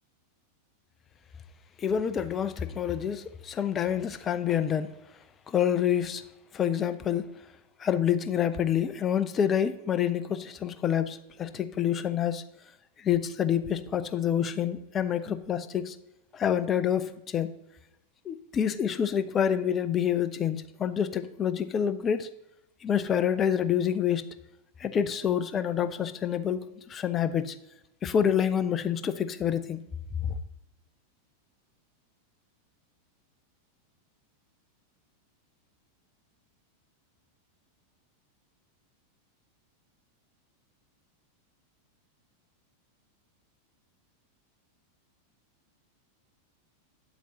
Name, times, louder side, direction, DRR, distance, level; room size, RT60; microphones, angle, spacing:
voice 1, 1.8-4.9 5.5-6.2 6.5-7.3 7.8-12.4 13.0-16.0 16.3-17.5 18.3-22.3 22.8-24.2 24.8-27.6 28.0-29.8 30.2-30.3, left 9 dB, 25° left, 12 dB, 0.5 m, -27 dB
8.1 x 7.5 x 2.9 m, 0.88 s
figure-of-eight pair, 90°, 0 cm